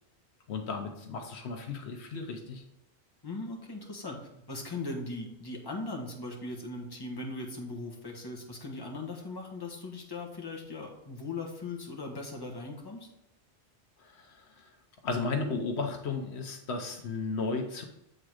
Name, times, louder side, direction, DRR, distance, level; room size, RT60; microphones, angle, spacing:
voice 1, 0.5-2.6 14.0-14.7 15.0-17.8, left 4 dB, 75° left, 4 dB, 1.1 m, -34 dB
voice 2, 3.2-13.1, left 2 dB, 20° left, -1 dB, 1.2 m, -39 dB
7.7 x 3.7 x 4.8 m, 0.81 s
omnidirectional pair, 1.1 m